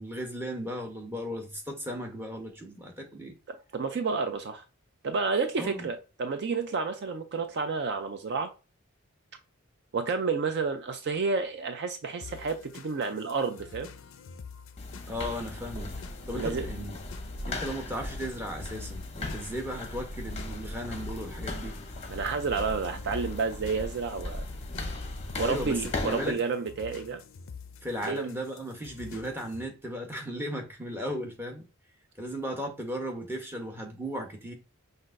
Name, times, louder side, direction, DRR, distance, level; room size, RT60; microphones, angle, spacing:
voice 1, 0.0-3.4 5.6-5.9 15.1-15.9 16.3-17.0 17.5-21.8 25.4-26.4 27.8-31.7 32.2-34.5, equal, 10° right, 0.9 m, -36 dB
voice 2, 3.5-4.6 5.0-8.5 9.9-13.9 16.3-16.7 22.1-24.4 25.4-27.2 28.1-28.3, right 4 dB, 50° right, 0.4 m, -30 dB
sound 1, 12.2-29.7, left 5 dB, 60° left, 0.4 m, -48 dB
sound 2, 14.8-26.3, left 2 dB, 30° left, 0.7 m, -38 dB
5.8 x 2.6 x 2.5 m
head